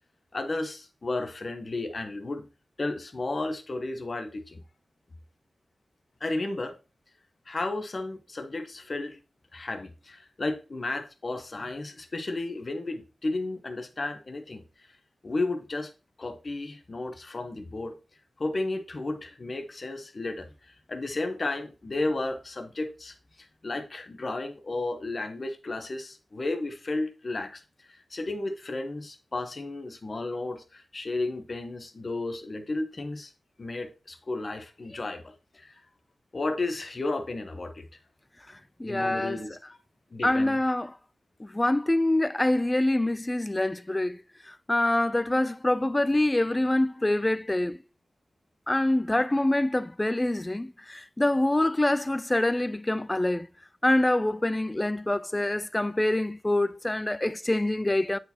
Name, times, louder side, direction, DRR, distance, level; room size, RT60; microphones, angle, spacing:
voice 1, 0.3-2.5 2.8-4.6 6.2-6.8 7.5-9.2 9.5-14.6 15.2-15.9 16.2-18.0 18.4-20.5 20.9-27.6 27.9-33.3 33.6-35.7 36.3-37.9 38.8-39.6 40.1-40.6, left 2 dB, 40° left, 0.9 m, -33 dB
voice 2, 38.8-39.4 40.2-41.0 41.4-44.2 44.5-47.8 48.7-53.5 53.8-58.2, left 1 dB, 15° left, 0.3 m, -25 dB
8.7 x 4.1 x 2.8 m
wide cardioid pair, 100°, 0 cm